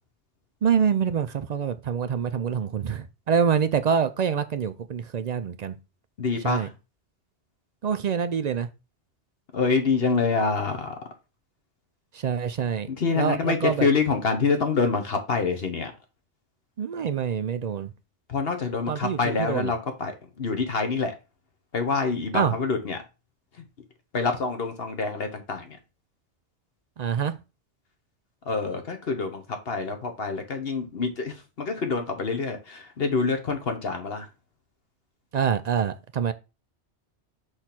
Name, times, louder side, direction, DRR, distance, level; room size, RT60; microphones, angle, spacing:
voice 1, 0.6-5.7 6.4-6.7 7.8-8.7 12.1-12.9 13.1-13.9 16.8-17.9 18.9-19.7 22.3-22.5 27.0-27.3 35.3-36.3, right 7 dB, 60° right, 0.4 m, -26 dB
voice 2, 6.2-6.7 9.5-11.0 12.9-15.9 18.3-20.1 20.4-21.1 21.7-23.0 24.1-25.8 28.5-34.3, left 4 dB, 60° left, 1.2 m, -26 dB
6.2 x 3.3 x 5.9 m
omnidirectional pair, 1.2 m